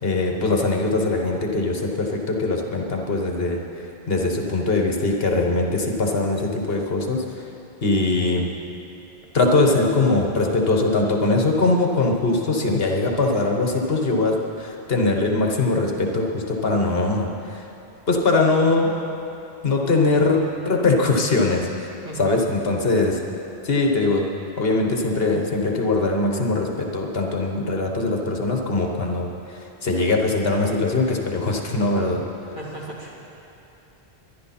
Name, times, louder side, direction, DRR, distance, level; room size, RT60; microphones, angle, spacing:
voice 1, 0.0-3.6 4.1-7.2 7.8-8.5 9.3-17.6 18.1-18.9 19.6-21.9 22.2-23.2 23.6-24.3 24.6-32.2, left 2 dB, 65° left, 1 dB, 1.5 m, -21 dB
voice 2, 22.0-22.3 32.5-33.2, right 2 dB, 50° right, -5 dB, 2.6 m, -36 dB
21.0 x 11.0 x 4.3 m, 2.9 s
omnidirectional pair, 1.1 m